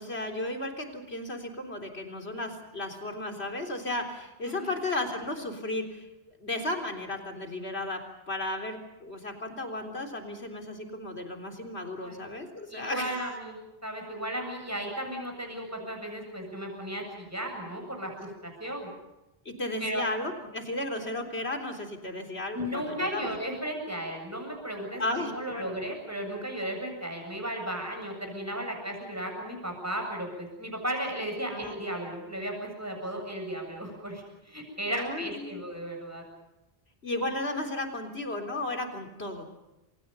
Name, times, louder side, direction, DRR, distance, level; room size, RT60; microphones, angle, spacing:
voice 1, 0.0-6.1 6.4-13.3 19.5-23.3 25.0-25.6 31.4-31.7 34.9-35.6 37.0-39.5, left 1 dB, 80° left, 4 dB, 4.1 m, -34 dB
voice 2, 12.7-18.9 19.8-20.0 22.5-36.2, right 1 dB, 15° right, 2 dB, 7.6 m, -35 dB
29.5 x 26.0 x 5.6 m, 0.95 s
omnidirectional pair, 1.1 m